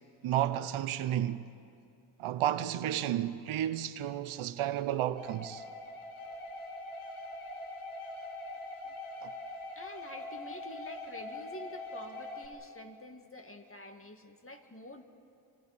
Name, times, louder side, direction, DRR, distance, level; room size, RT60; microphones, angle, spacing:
voice 1, 0.2-1.4 2.2-5.6 9.2-9.3, right 11 dB, 85° right, 0.9 m, -32 dB
sound 1, 5.2-12.5, left 2 dB, 80° left, 2.8 m, -43 dB
voice 2, 9.8-15.0, left 1 dB, 25° left, 2.1 m, -47 dB
30.0 x 25.5 x 4.3 m
cardioid pair, 60°, 48 cm